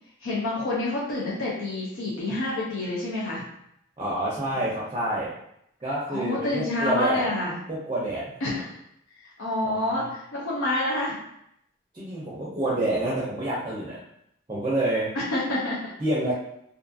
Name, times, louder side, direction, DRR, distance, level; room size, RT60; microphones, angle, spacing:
voice 1, 0.2-3.4 4.5-4.6 6.1-7.6 8.4-8.7 9.2-11.2 15.1-15.9, left 1 dB, 85° left, -6 dB, 0.6 m, -28 dB
voice 2, 4.0-5.3 5.8-7.2 7.7-8.2 9.6-10.1 11.9-14.0 14.5-15.1 16.0-16.3, right 1 dB, 20° right, -7 dB, 0.5 m, -28 dB
2.5 x 2.3 x 2.5 m, 0.76 s
head